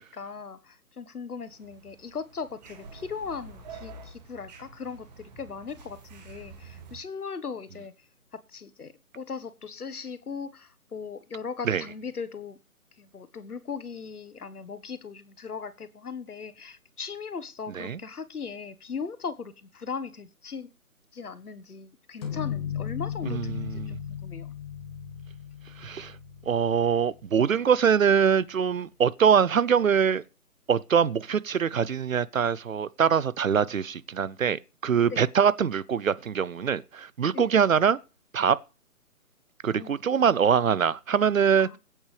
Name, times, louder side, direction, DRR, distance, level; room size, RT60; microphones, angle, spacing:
voice 1, 0.0-7.9 8.3-12.6 13.0-20.7 21.1-24.5 35.0-35.3 37.3-37.5 39.8-40.0 41.6-41.8, left 5 dB, 80° left, 1.4 m, -38 dB
sound 1, 1.5-7.0, right 3 dB, 30° right, 2.2 m, -47 dB
sound 2, 22.2-27.7, left 8 dB, 15° left, 1.7 m, -36 dB
voice 2, 23.3-24.0 25.8-26.1 26.5-30.2 30.7-38.0 38.3-38.6 39.6-41.7, right 7 dB, 60° right, 0.7 m, -23 dB
21.0 x 8.8 x 3.3 m
figure-of-eight pair, 160°, 44 cm